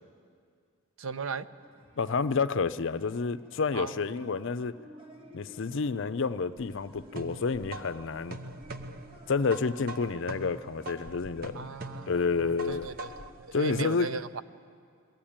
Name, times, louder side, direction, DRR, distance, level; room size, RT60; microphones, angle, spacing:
voice 1, 1.0-1.5 3.7-4.0 11.5-13.1 13.4-14.4, right 4 dB, 70° right, 13 dB, 0.7 m, -37 dB
sound 1, 1.6-13.4, equal, 25° right, 1.6 m, -54 dB
voice 2, 2.0-4.8 5.3-8.4 9.3-11.7 12.1-12.9 13.5-14.1, left 4 dB, 60° left, 13 dB, 0.5 m, -29 dB
sound 2, 6.6-13.4, right 2 dB, 45° right, 0.9 m, -43 dB
22.0 x 15.0 x 8.7 m, 2.1 s
head